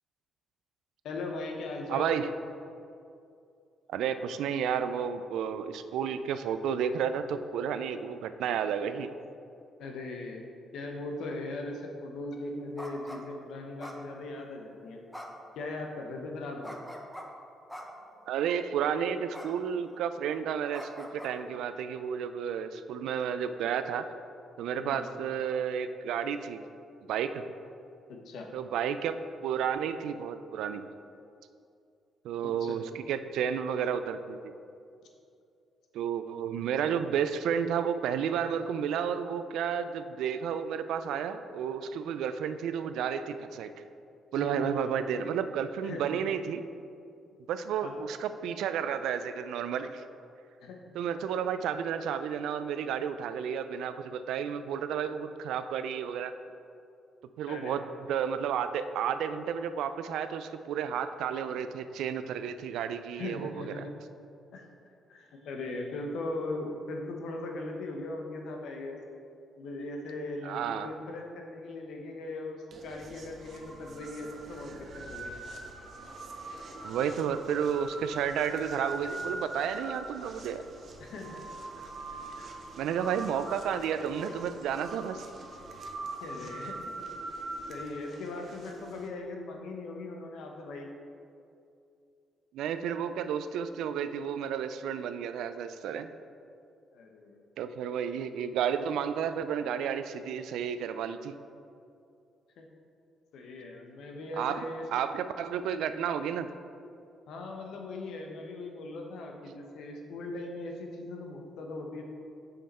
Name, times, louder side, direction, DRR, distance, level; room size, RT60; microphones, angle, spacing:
voice 1, 1.0-2.1 9.8-15.0 15.6-16.8 24.8-25.1 28.1-28.5 32.4-32.8 44.4-44.9 45.8-46.3 47.8-47.9 50.6-50.8 51.1-51.2 57.5-57.8 63.1-64.0 64.5-64.6 65.1-69.0 69.6-75.4 81.0-81.4 84.3-84.4 86.2-86.9 87.7-90.9 96.9-97.4 102.6-102.7 103.3-104.8 107.3-112.0, left 2 dB, 75° left, 2 dB, 0.9 m, -39 dB
voice 2, 1.9-2.3 3.9-9.1 18.3-24.0 24.6-26.6 27.1-27.4 28.5-30.8 32.2-34.5 35.9-43.7 44.3-46.6 47.5-50.0 50.9-56.3 57.4-63.8 70.4-70.9 76.8-80.7 82.8-85.2 92.5-96.1 97.6-101.4 104.4-104.6 104.9-106.5, right 8 dB, 85° right, 11 dB, 0.3 m, -32 dB
sound 1, 12.8-13.2 13.8-14.5 15.1-15.5 16.6-17.3 17.7-18.1 19.3-19.5 19.8-20.1 20.7-21.3, equal, ahead, 0.7 m, -43 dB
sound 2, 72.7-89.1, right 2 dB, 55° right, 0.8 m, -42 dB
5.6 x 5.3 x 4.2 m, 2.5 s
cardioid pair, 90°, 0 cm